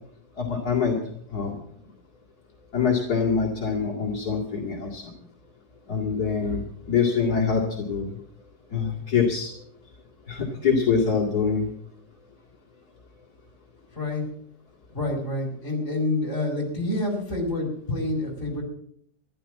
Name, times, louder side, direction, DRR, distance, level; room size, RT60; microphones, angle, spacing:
voice 1, 0.4-1.0 1.3-1.5 2.7-5.1 5.9-8.1 8.7-9.5 10.3-11.7, left 6 dB, 65° left, -2 dB, 3.0 m, -24 dB
voice 2, 13.9-14.2 14.9-18.6, left 2 dB, 45° left, 0 dB, 5.0 m, -28 dB
14.5 x 11.5 x 7.3 m, 0.66 s
omnidirectional pair, 1.8 m